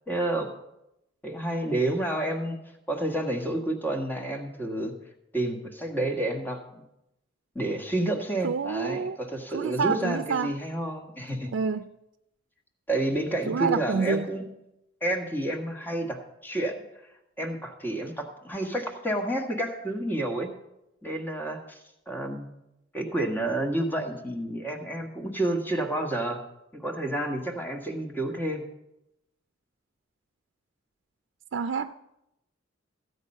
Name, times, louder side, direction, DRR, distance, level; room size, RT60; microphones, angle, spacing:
voice 1, 0.1-0.5 1.2-2.6 2.9-4.9 5.3-6.8 7.5-11.5 12.9-14.5 15.0-16.8 17.4-20.5 21.0-21.8 22.1-22.5 22.9-26.4 26.7-28.6, right 1 dB, 10° left, 4 dB, 1.5 m, -30 dB
voice 2, 8.4-9.2 9.5-10.5 11.5-11.9 13.5-14.3 31.5-31.9, right 5 dB, 90° right, 9 dB, 0.4 m, -28 dB
14.5 x 8.2 x 5.4 m, 0.87 s
head